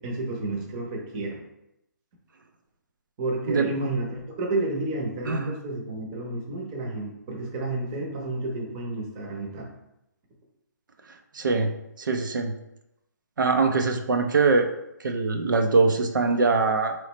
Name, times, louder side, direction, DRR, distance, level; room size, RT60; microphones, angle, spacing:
voice 1, 0.0-1.4 3.2-9.7, right 2 dB, 20° right, 0 dB, 0.7 m, -31 dB
voice 2, 5.3-5.6 11.3-11.7 12.0-12.5 13.4-14.7 15.0-17.0, right 4 dB, 85° right, 5 dB, 0.6 m, -22 dB
3.9 x 3.1 x 3.0 m, 0.85 s
hypercardioid pair, 165°, 10 cm